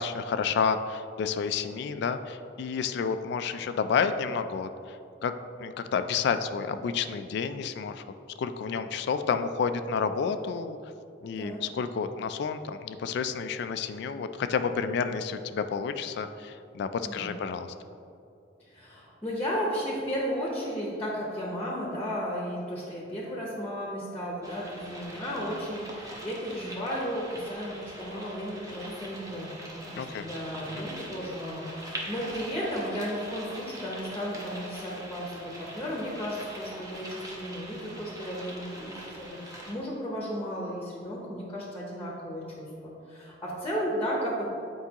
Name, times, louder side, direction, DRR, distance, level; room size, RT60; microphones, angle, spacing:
voice 1, 0.0-5.3 5.6-8.0 8.4-10.8 11.2-17.7 30.0-30.3 30.7-30.9, left 6 dB, 65° left, 10 dB, 0.3 m, -30 dB
voice 2, 18.7-44.5, equal, 10° left, -4 dB, 0.8 m, -34 dB
sound 1, 24.4-39.7, right 1 dB, 20° right, 0.9 m, -43 dB
8.1 x 4.6 x 2.9 m, 2.6 s
head